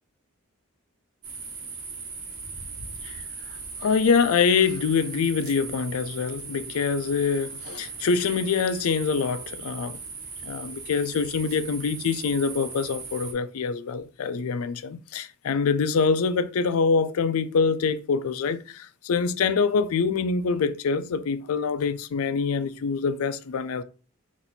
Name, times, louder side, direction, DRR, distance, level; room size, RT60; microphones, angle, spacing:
sound 1, 1.2-13.3, right 4 dB, 75° right, 1.3 m, -38 dB
voice 1, 3.8-10.0 10.4-23.8, left 5 dB, 70° left, 0.4 m, -25 dB
4.1 x 2.6 x 4.2 m
head